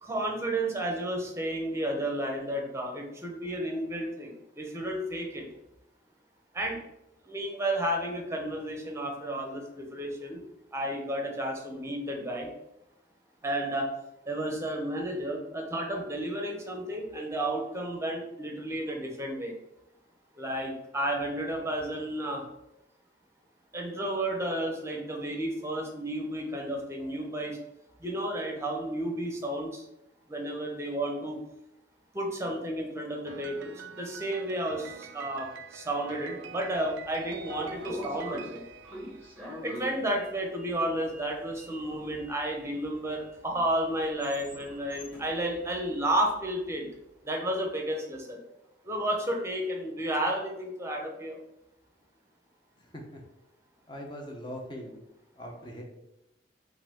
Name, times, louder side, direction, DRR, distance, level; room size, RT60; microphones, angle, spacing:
voice 1, 0.0-5.4 6.5-6.8 7.2-10.4 10.7-12.5 13.4-13.9 14.3-19.5 20.3-22.4 23.7-27.6 28.0-29.8 30.3-31.4 32.1-38.6 39.6-46.9 47.2-48.4 48.8-51.4, right 1 dB, 15° right, 1 dB, 0.8 m, -32 dB
Piano, 33.3-39.8, right 7 dB, 90° right, 0.3 m, -47 dB
Sliding door, 36.7-46.8, equal, 10° left, 1.5 m, -45 dB
voice 2, 52.8-53.2 53.9-55.0 55.3-55.8, equal, 25° left, 1 dB, 0.8 m, -41 dB
5.6 x 2.6 x 3.6 m, 0.87 s
head